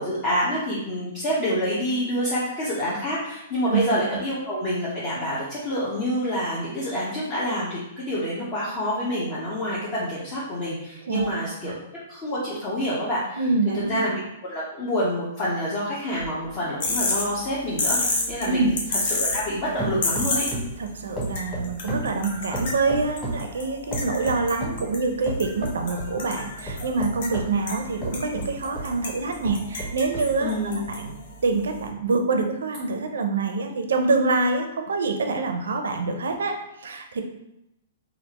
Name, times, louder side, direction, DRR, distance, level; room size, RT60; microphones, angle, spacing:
voice 1, 0.0-11.7 12.1-13.4 13.9-20.5 30.4-30.8, equal, 35° left, -8 dB, 0.8 m, -27 dB
voice 2, 13.4-14.0 18.4-18.7 20.8-30.5 30.9-31.2 31.4-37.2, right 3 dB, 85° right, 5 dB, 0.4 m, -26 dB
sound 1, 16.2-19.5 19.8-20.8 21.2-23.5 23.9-24.8 25.3-26.1 26.7-28.9 29.4-30.3 30.9-31.0, right 1 dB, 5° left, 1.3 m, -33 dB
sound 2, 16.8-31.9, left 2 dB, 65° left, 0.8 m, -32 dB
3.4 x 2.4 x 2.9 m, 0.85 s
hypercardioid pair, 135°, 0 cm